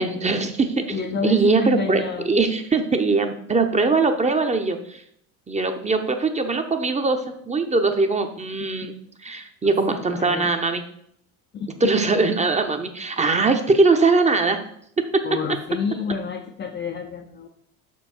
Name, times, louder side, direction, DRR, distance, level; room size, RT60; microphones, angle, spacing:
voice 1, 0.0-5.0 5.5-9.0 9.2-10.8 11.8-14.6 15.0-15.2, right 3 dB, 15° right, 6 dB, 0.7 m, -21 dB
voice 2, 0.9-2.3 8.6-8.7 9.9-10.5 11.5-11.9 15.2-17.5, left 6 dB, 25° left, 5 dB, 0.5 m, -29 dB
6.7 x 4.6 x 4.3 m, 0.69 s
hypercardioid pair, 70°, 44 cm